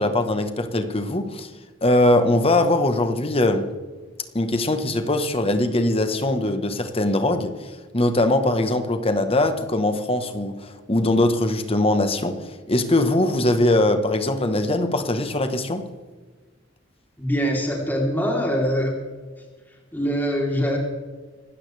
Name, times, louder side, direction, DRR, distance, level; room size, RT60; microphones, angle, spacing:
voice 1, 0.0-1.5 1.8-3.7 4.3-15.9, left 1 dB, 30° left, 1.3 m, -21 dB
voice 2, 17.2-18.9 19.9-20.8, equal, 10° left, 3.5 m, -23 dB
25.5 x 13.5 x 3.4 m
head